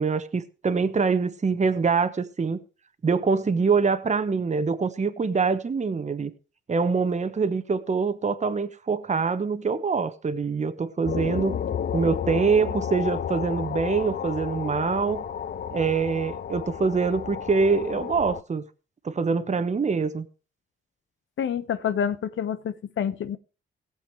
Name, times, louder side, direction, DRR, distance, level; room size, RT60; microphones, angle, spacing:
voice 1, 0.0-2.6 3.0-6.3 6.7-11.6 11.9-15.2 15.7-18.6 19.0-20.3, right 5 dB, 35° right, 1.0 m, -24 dB
sound 1, 11.0-18.4, left 8 dB, 50° left, 0.5 m, -32 dB
voice 2, 21.4-23.4, left 8 dB, 70° left, 0.9 m, -28 dB
17.5 x 7.2 x 4.6 m
cardioid pair, 85°, 21 cm